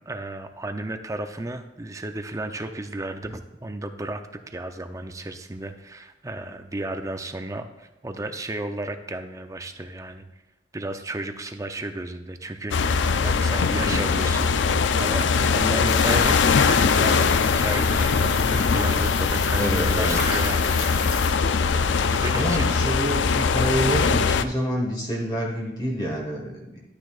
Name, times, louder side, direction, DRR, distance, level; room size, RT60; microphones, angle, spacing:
voice 1, 0.1-10.3 10.7-21.3 21.9-22.7, right 2 dB, 20° right, 7 dB, 0.6 m, -33 dB
sound 1, 12.7-24.4, left 5 dB, 90° left, 0.4 m, -21 dB
sound 2, 15.9-21.3, left 3 dB, 55° left, 1.8 m, -34 dB
voice 2, 19.3-20.2 22.3-26.8, equal, 25° left, -1 dB, 1.6 m, -27 dB
12.0 x 9.2 x 2.4 m, 1.0 s
head